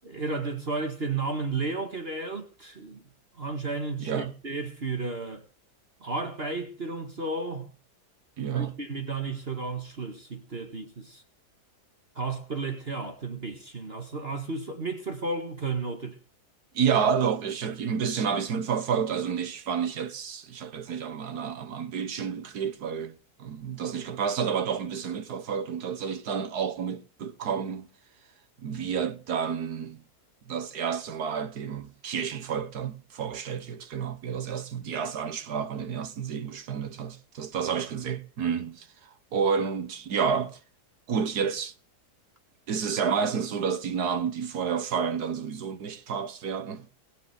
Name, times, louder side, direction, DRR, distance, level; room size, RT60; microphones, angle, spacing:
voice 1, 0.0-3.0 3.4-5.5 6.0-7.7 8.5-11.2 12.2-16.2, right 3 dB, 40° right, 1.8 m, -33 dB
voice 2, 8.4-8.7 16.7-27.9 28.6-30.0 30.5-38.9 39.3-40.6 41.1-41.7 42.7-46.9, right 7 dB, 70° right, 1.8 m, -30 dB
20.0 x 7.0 x 8.0 m
omnidirectional pair, 1.8 m